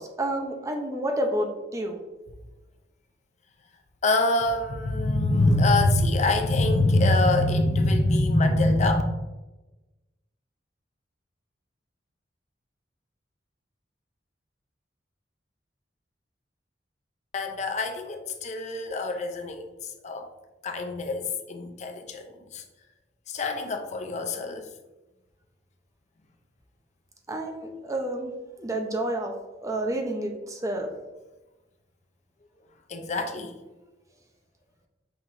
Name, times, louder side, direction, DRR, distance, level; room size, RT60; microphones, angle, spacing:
voice 1, 0.0-2.0 27.3-29.3 29.6-30.9, right 1 dB, 20° right, 3 dB, 0.5 m, -30 dB
voice 2, 4.0-9.0 17.3-20.3 20.6-22.6 23.3-24.7 32.9-33.6, left 2 dB, 40° left, 5 dB, 0.4 m, -24 dB
5.6 x 2.9 x 2.5 m, 1.1 s
head